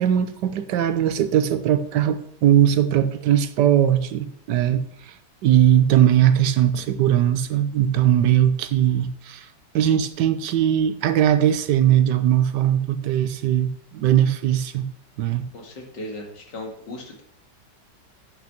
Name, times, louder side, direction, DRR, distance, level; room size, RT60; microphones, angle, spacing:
voice 1, 0.0-5.1 5.4-9.5 9.7-14.9 15.2-15.4, right 10 dB, 80° right, 1.4 m, -20 dB
voice 2, 15.5-17.2, left 1 dB, 85° left, 2.7 m, -36 dB
8.9 x 6.1 x 5.8 m
omnidirectional pair, 1.9 m